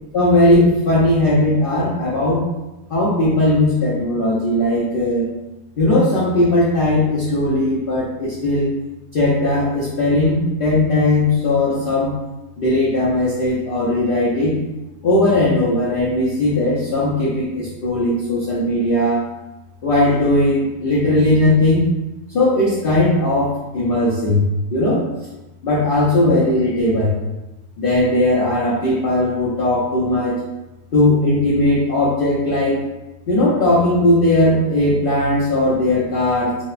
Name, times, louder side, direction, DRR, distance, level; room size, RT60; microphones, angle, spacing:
voice 1, 0.1-2.5 2.9-5.3 5.8-8.7 9.1-12.1 12.6-14.6 15.0-19.3 19.8-21.9 22.3-24.4 24.7-25.0 25.6-27.2 27.8-30.4 30.9-32.8 33.3-36.6, left 1 dB, 85° left, -8 dB, 0.4 m, -18 dB
2.8 x 2.1 x 2.4 m, 1.0 s
omnidirectional pair, 1.7 m